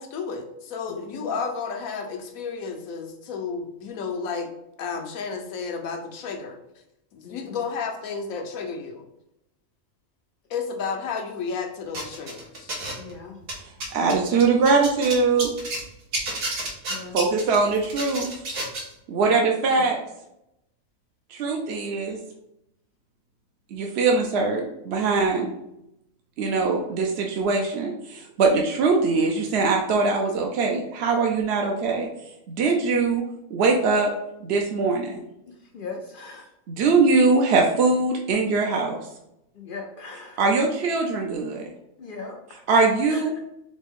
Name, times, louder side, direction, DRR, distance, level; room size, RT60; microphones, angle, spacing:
voice 1, 0.0-4.5 4.8-6.6 7.1-9.0 10.5-12.8, left 5 dB, 85° left, 4 dB, 1.2 m, -32 dB
voice 2, 7.2-7.6 13.0-13.4 16.9-17.2 35.7-36.4 39.6-40.4 42.0-42.6 43.1-43.2, left 4 dB, 70° left, 3 dB, 0.5 m, -38 dB
sound 1, 11.9-13.1 13.4-15.8 16.1-18.9, right 2 dB, 85° right, 1.6 m, -31 dB
voice 3, 13.9-15.5 17.1-18.3 19.1-20.0 21.3-22.2 23.7-25.5 26.4-32.1 32.5-33.2 33.5-34.1 34.4-35.2 36.7-39.0 40.4-41.7 42.7-43.4, right 4 dB, 60° right, 1 dB, 0.7 m, -22 dB
4.2 x 3.5 x 3.6 m, 0.85 s
omnidirectional pair, 1.4 m